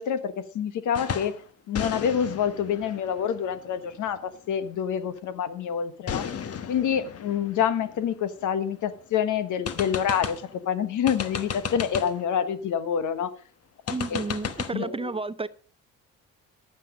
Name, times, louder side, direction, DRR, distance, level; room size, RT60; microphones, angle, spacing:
voice 1, 0.0-1.3 1.7-6.3 6.7-13.3 14.1-14.2 14.7-15.1, left 8 dB, 70° left, 1.4 m, -27 dB
sound 1, 0.9-1.4 1.7-4.4 6.1-8.8 9.1-9.2 9.7-10.6 11.1-12.3 13.9-14.7, left 7 dB, 50° left, 1.2 m, -35 dB
voice 2, 13.9-15.5, right 3 dB, 20° right, 0.5 m, -31 dB
10.5 x 9.2 x 5.1 m
supercardioid pair, 80°, 32 cm